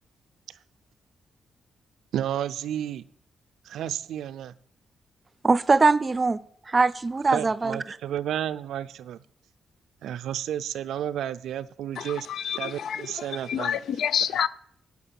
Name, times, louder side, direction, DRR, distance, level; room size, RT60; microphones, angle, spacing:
voice 1, 2.1-3.0 3.6-4.5 7.3-9.2 10.0-13.8, right 10 dB, 85° right, 0.5 m, -32 dB
voice 2, 5.4-6.4 6.7-8.0, right 3 dB, 30° right, 0.5 m, -22 dB
voice 3, 12.0-14.5, left 8 dB, 75° left, 0.5 m, -29 dB
11.0 x 6.0 x 7.6 m
cardioid pair, 100°, 0 cm